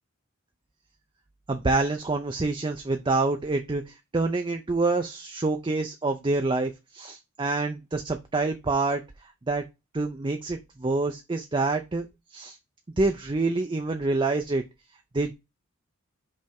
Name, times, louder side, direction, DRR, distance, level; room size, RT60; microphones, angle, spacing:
voice 1, 1.5-9.0 9.5-9.6 9.9-12.1 12.3-12.6 13.0-14.6 15.1-15.3, right 3 dB, 25° right, 5 dB, 0.5 m, -27 dB
5.3 x 3.4 x 5.3 m, 0.23 s
head